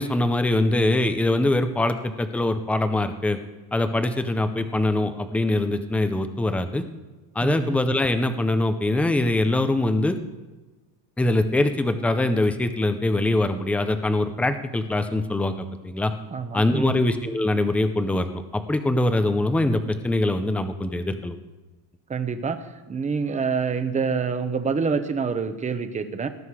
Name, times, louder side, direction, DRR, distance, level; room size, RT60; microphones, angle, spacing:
voice 1, 0.0-3.4 3.7-6.8 7.4-10.2 11.2-16.1 16.5-21.4, left 2 dB, 5° left, 9 dB, 0.4 m, -23 dB
voice 2, 7.4-7.8 16.3-17.0 22.1-22.6 22.9-26.3, right 5 dB, 15° right, 9 dB, 0.8 m, -26 dB
18.5 x 11.5 x 4.7 m, 1.2 s
cardioid pair, 165°, 50 cm